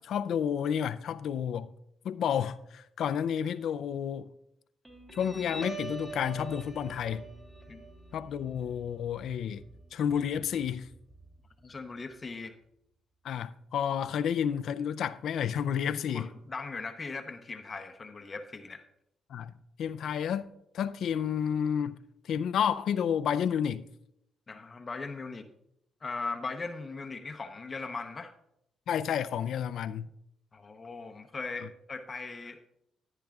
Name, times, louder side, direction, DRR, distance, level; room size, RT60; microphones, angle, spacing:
voice 1, 0.0-1.7 2.0-4.3 5.1-7.2 8.1-9.6 9.9-10.9 13.2-16.3 19.3-19.5 19.8-20.5 20.7-21.9 22.3-23.8 28.9-30.1, left 8 dB, 70° left, 0.5 m, -30 dB
Guitar, 4.8-11.8, right 3 dB, 15° right, 2.7 m, -45 dB
voice 2, 11.6-12.6 16.1-18.8 24.5-25.4 26.0-28.3 30.5-32.6, left 4 dB, 30° left, 0.8 m, -39 dB
14.0 x 10.0 x 2.4 m
cardioid pair, 90°, 0 cm